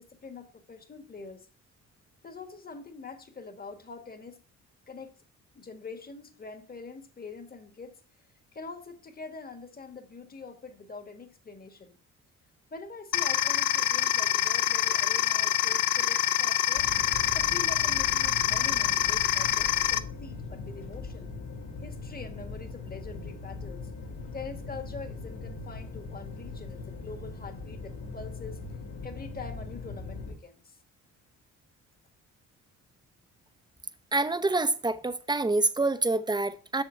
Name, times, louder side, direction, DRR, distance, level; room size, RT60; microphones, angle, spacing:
voice 1, 0.0-1.5 2.2-4.4 4.9-5.2 5.5-8.0 8.5-12.0 12.7-16.9 17.3-21.3 21.8-23.9 24.3-28.6 29.0-30.8, left 4 dB, 30° left, 1.7 m, -44 dB
sound 1, 13.1-20.0, left 13 dB, 80° left, 0.6 m, -26 dB
sound 2, 16.7-30.3, left 3 dB, 65° left, 2.4 m, -40 dB
voice 2, 34.1-36.8, right 2 dB, 15° right, 0.8 m, -26 dB
7.4 x 6.6 x 4.4 m
cardioid pair, 90°, 30 cm